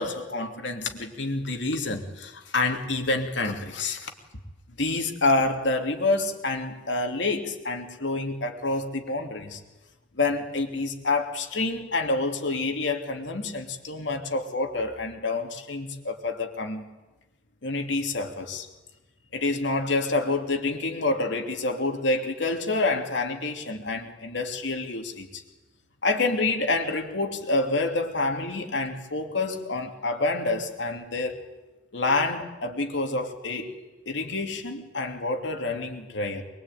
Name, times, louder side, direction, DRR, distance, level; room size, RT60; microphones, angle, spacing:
voice 1, 0.0-4.1 4.8-9.6 10.1-16.8 17.6-18.7 19.3-25.4 26.0-31.4 31.9-33.7 34.1-36.4, left 2 dB, 75° left, 3 dB, 2.9 m, -28 dB
23.0 x 22.5 x 9.3 m, 1.1 s
head